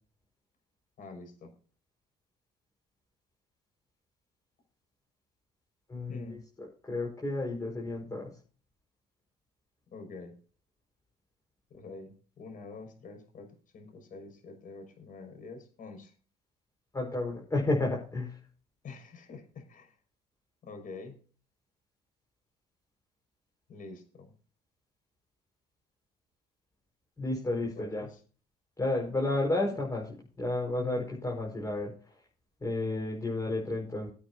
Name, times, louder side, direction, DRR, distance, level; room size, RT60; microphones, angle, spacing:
voice 1, 1.0-1.5 6.1-6.4 9.9-10.3 11.7-16.1 18.8-19.9 20.6-21.2 23.7-24.3 27.5-28.2 29.7-29.8, left 3 dB, 55° left, 5 dB, 6.1 m, -46 dB
voice 2, 5.9-8.3 16.9-18.4 27.2-28.1 28.8-30.1 30.4-31.9 32.6-34.1, left 2 dB, 20° left, -2 dB, 5.2 m, -31 dB
22.0 x 8.7 x 2.8 m, 0.39 s
cardioid pair, 110°, 17 cm